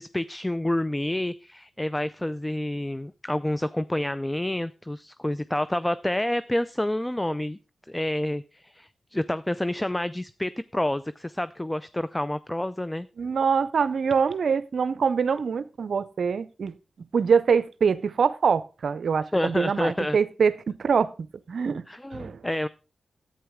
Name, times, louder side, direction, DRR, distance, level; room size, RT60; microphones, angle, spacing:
voice 1, 0.0-7.6 7.9-13.1 19.3-20.2 21.9-22.7, left 1 dB, 15° left, 15 dB, 0.4 m, -28 dB
voice 2, 13.2-16.7 17.1-21.1 21.5-21.8 22.1-22.4, right 6 dB, 70° right, 15 dB, 0.5 m, -24 dB
10.0 x 8.6 x 3.5 m, 0.32 s
cardioid pair, 50°, 0 cm